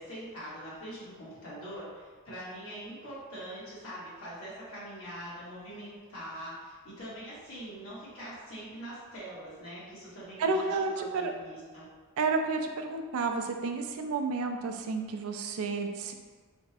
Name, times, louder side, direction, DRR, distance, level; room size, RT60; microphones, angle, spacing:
voice 1, 0.0-11.9, equal, 70° left, -9 dB, 1.4 m, -43 dB
voice 2, 10.4-11.3 12.2-16.1, right 4 dB, 80° right, 4 dB, 0.4 m, -31 dB
3.4 x 2.0 x 4.1 m, 1.5 s
head